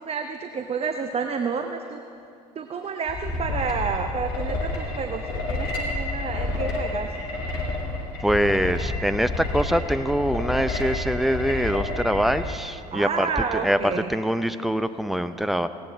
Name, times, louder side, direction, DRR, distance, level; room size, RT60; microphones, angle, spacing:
voice 1, 0.0-2.0 2.6-7.1 12.9-14.1, right 5 dB, 30° right, 6 dB, 0.9 m, -30 dB
sound 1, 3.1-12.5, left 2 dB, 55° left, 2.7 m, -29 dB
voice 2, 8.2-15.7, equal, ahead, 11 dB, 0.6 m, -24 dB
19.0 x 17.0 x 3.4 m, 2.5 s
figure-of-eight pair, 65°, 21 cm